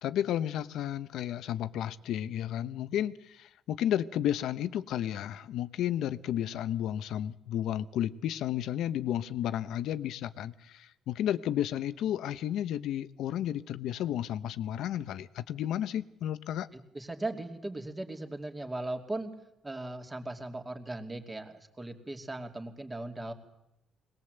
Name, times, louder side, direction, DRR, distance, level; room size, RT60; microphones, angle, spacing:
voice 1, 0.0-16.7, left 11 dB, 80° left, 0.9 m, -32 dB
voice 2, 16.7-19.3 19.6-23.3, right 2 dB, 15° right, 2.7 m, -38 dB
21.5 x 20.0 x 8.0 m
cardioid pair, 110°, 0 cm